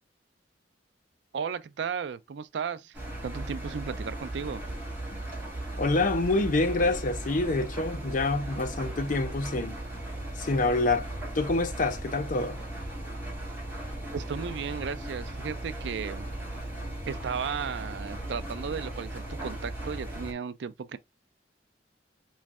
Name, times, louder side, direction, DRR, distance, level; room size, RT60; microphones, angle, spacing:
voice 1, 1.3-3.0 3.2-4.6 14.1-16.3 17.1-21.0, right 6 dB, 70° right, 0.4 m, -35 dB
Engine, 2.9-20.3, right 1 dB, 10° right, 1.9 m, -37 dB
voice 2, 5.8-9.8 10.4-11.1 11.3-12.6, left 2 dB, 45° left, 0.6 m, -27 dB
4.2 x 3.1 x 2.4 m
head